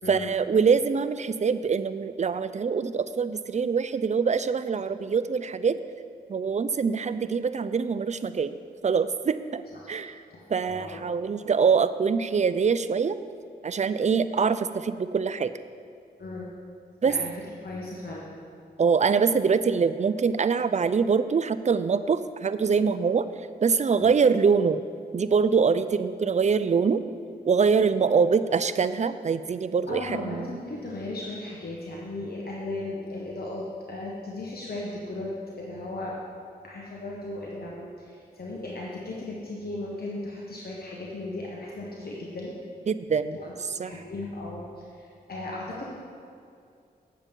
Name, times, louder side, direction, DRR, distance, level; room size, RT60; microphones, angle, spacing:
voice 1, 0.1-5.8 6.3-8.6 8.8-10.2 10.5-13.2 13.6-15.5 17.0-17.2 18.8-23.3 23.6-24.8 25.1-27.0 27.4-30.6 42.9-43.4 43.8-43.9, right 5 dB, 40° right, 12 dB, 0.4 m, -24 dB
voice 2, 10.3-11.0 16.2-16.5 17.0-17.3 17.6-18.3 24.0-24.1 29.9-36.2 36.6-42.5 43.3-43.5 43.8-45.8, left 2 dB, 60° left, -4 dB, 1.3 m, -36 dB
8.5 x 7.2 x 5.3 m, 2.3 s
cardioid pair, 55°, 18 cm